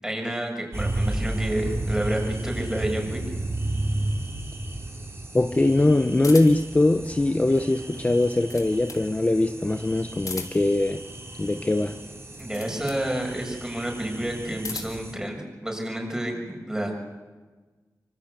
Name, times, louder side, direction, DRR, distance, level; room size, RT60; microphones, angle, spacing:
voice 1, 0.0-3.2 12.4-16.9, right 1 dB, 10° right, 2 dB, 6.8 m, -30 dB
sound 1, 0.7-15.1, right 1 dB, 40° right, 4.7 m, -33 dB
voice 2, 5.3-11.0 11.4-12.0, left 2 dB, 25° left, 8 dB, 1.0 m, -22 dB
sound 2, 6.2-6.7 8.0-9.1 10.1-10.8 12.3-13.1 14.3-15.1, left 4 dB, 60° left, 3.0 m, -38 dB
25.5 x 24.5 x 8.4 m, 1.3 s
wide cardioid pair, 90°, 7 cm